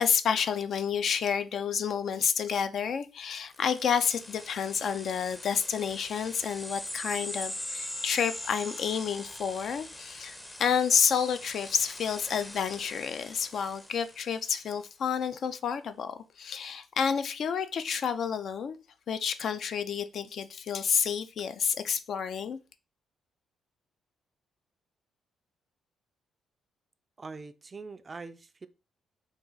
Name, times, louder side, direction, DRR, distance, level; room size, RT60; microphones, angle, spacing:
voice 1, 0.0-22.6, left 7 dB, 60° left, 0.4 m, -30 dB
sound 1, 3.5-14.6, left 1 dB, 15° left, 0.6 m, -42 dB
voice 2, 27.2-28.7, right 4 dB, 30° right, 0.3 m, -43 dB
3.9 x 2.3 x 3.8 m
cardioid pair, 90°, 0 cm